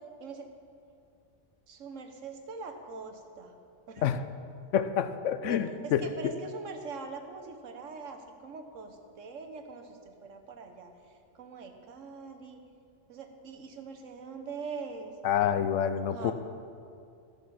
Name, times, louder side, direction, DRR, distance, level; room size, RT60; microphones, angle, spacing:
voice 1, 1.7-3.5 3.9-4.0 5.5-10.9 11.4-12.6 13.1-15.1 15.9-16.3, right 4 dB, 90° right, 6 dB, 1.4 m, -43 dB
voice 2, 4.7-6.3 15.2-16.3, left 9 dB, 85° left, 12 dB, 0.9 m, -28 dB
13.5 x 6.9 x 5.9 m, 2.4 s
omnidirectional pair, 1.3 m